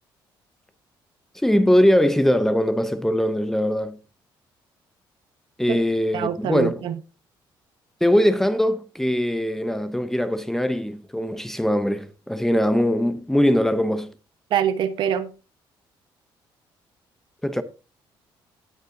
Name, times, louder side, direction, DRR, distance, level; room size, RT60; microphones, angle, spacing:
voice 1, 1.3-4.0 5.6-6.8 8.0-14.1 17.4-17.6, equal, 5° left, 0.7 m, -21 dB
voice 2, 6.1-7.0 14.5-15.3, right 9 dB, 65° right, 1.1 m, -24 dB
18.5 x 6.6 x 2.7 m
cardioid pair, 150°, 9 cm